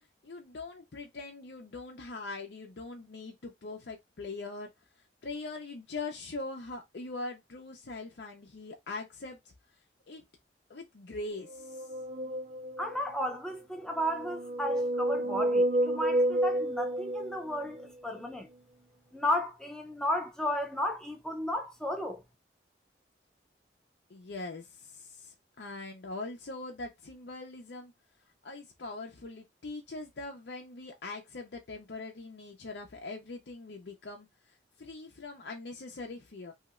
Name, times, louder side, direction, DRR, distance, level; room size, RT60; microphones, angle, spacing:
voice 1, 0.2-4.7 5.2-9.4 10.1-10.2 10.7-11.9 24.1-27.9 28.4-34.3 34.8-36.5, left 3 dB, 65° left, 0.6 m, -42 dB
sound 1, 11.5-13.1 14.0-17.8, right 1 dB, 45° right, 0.4 m, -30 dB
voice 2, 12.8-18.5 19.1-22.2, left 1 dB, 5° left, 0.6 m, -34 dB
3.0 x 2.8 x 2.4 m
head